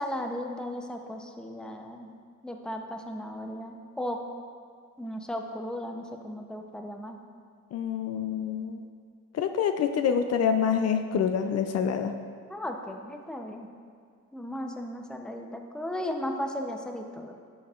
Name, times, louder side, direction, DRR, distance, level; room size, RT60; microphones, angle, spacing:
voice 1, 0.0-2.1 2.4-4.2 5.0-7.2 12.5-13.7 14.3-17.3, left 1 dB, 5° left, 3 dB, 0.6 m, -36 dB
voice 2, 7.7-8.8 9.3-12.1, left 7 dB, 55° left, 8 dB, 0.5 m, -26 dB
10.5 x 7.1 x 2.4 m, 2.1 s
cardioid pair, 90°, 30 cm